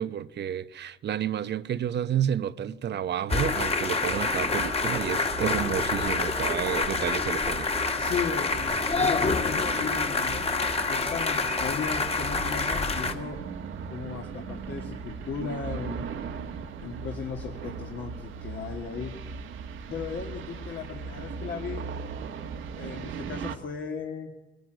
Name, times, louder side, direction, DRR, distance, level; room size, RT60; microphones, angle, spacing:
voice 1, 0.0-7.7, right 9 dB, 60° right, 0.8 m, -30 dB
sound 1, 3.3-13.1, left 4 dB, 30° left, 1.8 m, -27 dB
sound 2, 4.0-23.6, right 5 dB, 75° right, 1.5 m, -39 dB
voice 2, 7.6-13.4 13.9-16.1 16.8-19.1 19.9-21.8 22.8-24.3, left 6 dB, 65° left, 2.3 m, -36 dB
21.5 x 17.0 x 9.2 m
cardioid pair, 90°, 20 cm